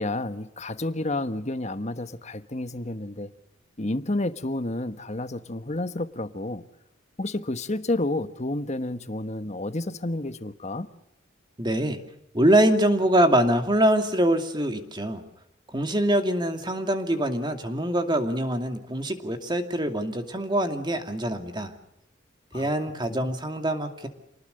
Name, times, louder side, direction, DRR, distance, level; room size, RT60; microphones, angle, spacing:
voice 1, 0.0-3.3 3.8-6.6 7.2-10.9 22.5-22.7 23.1-23.3, left 2 dB, 35° left, 1.2 m, -30 dB
voice 2, 11.6-12.0 12.3-15.2 15.7-21.7 22.5-24.1, right 1 dB, 20° right, 2.5 m, -24 dB
28.5 x 20.0 x 6.5 m
head